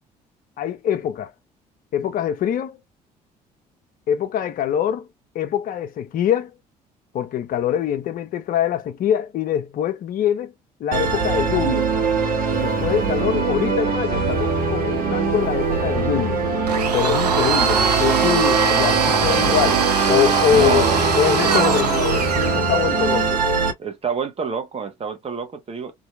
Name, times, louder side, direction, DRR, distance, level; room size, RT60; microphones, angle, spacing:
voice 1, 0.6-1.3 1.9-2.8 4.1-5.1 5.3-6.5 7.1-10.5 10.8-11.9 12.6-16.4 16.9-19.8 20.1-20.9 21.2-23.4, left 10 dB, 45° left, 0.6 m, -23 dB
Musical instrument, 10.9-23.7, right 4 dB, 45° right, 1.3 m, -22 dB
Domestic sounds home sounds, 16.7-22.6, right 6 dB, 85° right, 0.4 m, -22 dB
voice 2, 20.5-21.1 23.8-25.9, right 6 dB, 30° right, 1.1 m, -28 dB
2.9 x 2.6 x 2.3 m
figure-of-eight pair, 50°, 20 cm